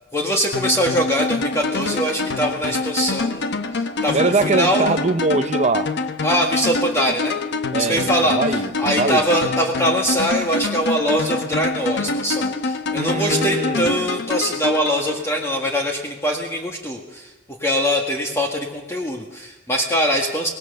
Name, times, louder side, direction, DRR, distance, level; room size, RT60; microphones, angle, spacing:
voice 1, 0.1-4.9 6.2-7.4 7.7-17.3 17.6-20.5, equal, 15° left, 1.8 m, -22 dB
sound 1, 0.5-15.6, left 3 dB, 55° left, 1.1 m, -25 dB
voice 2, 4.1-5.9 7.7-9.2 12.9-13.9, right 3 dB, 35° right, 0.8 m, -22 dB
25.0 x 19.5 x 6.7 m
head